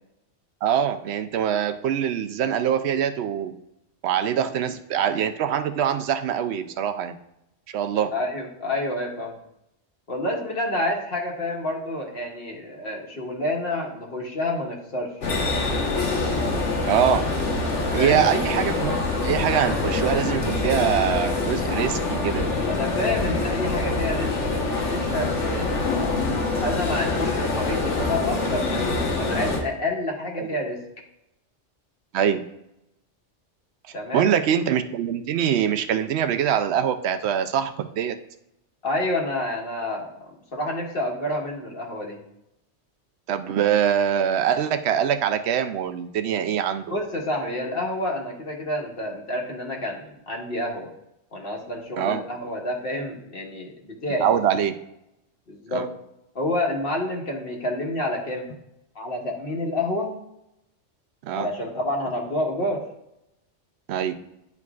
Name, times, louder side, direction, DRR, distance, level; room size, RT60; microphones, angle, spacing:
voice 1, 0.6-3.5 4.0-7.2 7.7-8.1 16.9-17.2 17.9-22.4 30.4-30.6 32.1-32.4 34.1-38.2 43.3-46.8 52.0-52.2 54.2-54.7 55.7-55.9 61.2-61.5 63.9-64.1, right 9 dB, 70° right, 10 dB, 0.8 m, -23 dB
voice 2, 8.1-9.4 10.1-15.1 17.9-18.2 22.6-26.2 26.6-30.8 33.9-34.3 38.8-40.1 40.5-42.2 46.9-50.9 51.3-54.4 55.5-55.9 56.3-58.4 58.9-60.1 61.3-62.8, left 1 dB, 50° left, -1 dB, 1.5 m, -28 dB
sound 1, 15.2-29.6, left 3 dB, 75° left, 1.5 m, -25 dB
10.5 x 4.7 x 2.4 m, 0.83 s
omnidirectional pair, 1.2 m